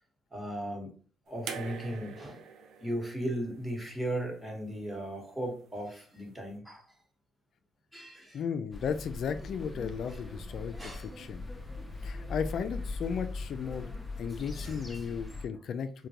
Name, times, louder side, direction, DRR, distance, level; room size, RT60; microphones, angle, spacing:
voice 1, 0.3-0.9 1.3-2.4 2.8-6.8 7.9-8.4 10.1-10.2 10.8-11.1 14.6-14.8, right 1 dB, 10° right, 0 dB, 1.3 m, -37 dB
sound 1, 1.5-4.6 5.8-5.9, right 6 dB, 80° right, 0.5 m, -44 dB
voice 2, 8.3-11.4 12.0-13.9 14.2-16.1, left 7 dB, 65° left, 10 dB, 0.3 m, -35 dB
sound 2, 8.7-15.5, left 2 dB, 10° left, 0.7 m, -40 dB
3.7 x 2.2 x 2.8 m, 0.39 s
cardioid pair, 90°, 0 cm